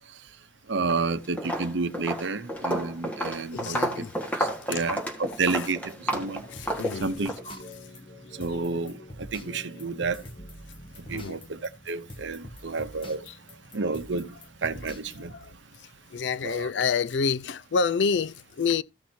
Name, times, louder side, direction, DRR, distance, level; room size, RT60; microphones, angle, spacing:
Walk footsteps, 0.7-1.1 1.4-7.4, right 1 dB, 10° left, 1.6 m, -31 dB
voice 1, 0.7-4.1 4.4-6.4 7.0-7.6 8.4-10.2 11.1-11.6 11.9-13.3 13.7-14.3 14.6-15.3 16.4-16.7, right 4 dB, 80° right, 0.8 m, -30 dB
voice 2, 3.5-4.1 4.7-4.9 5.4-5.7 6.5-7.8 8.5-8.6 11.1-11.4 13.2-13.4 14.3-14.4 15.3-15.5 15.8-18.8, left 5 dB, 70° left, 0.4 m, -29 dB
sound 1, 5.9-15.2, left 1 dB, 30° left, 1.3 m, -45 dB
15.0 x 6.0 x 2.8 m
head